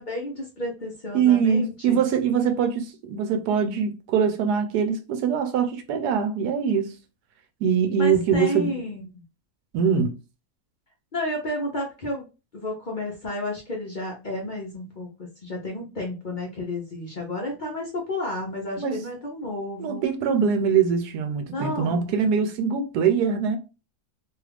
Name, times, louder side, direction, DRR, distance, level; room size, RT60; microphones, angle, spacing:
voice 1, 0.0-2.0 8.0-9.2 11.1-12.2 12.5-15.1 15.4-20.0 21.5-22.1, left 1 dB, 40° left, 0.7 m, -31 dB
voice 2, 1.1-7.0 7.6-8.8 9.7-10.2 18.8-19.0 19.8-23.6, right 7 dB, 85° right, 1.2 m, -23 dB
3.0 x 2.4 x 3.3 m
omnidirectional pair, 1.6 m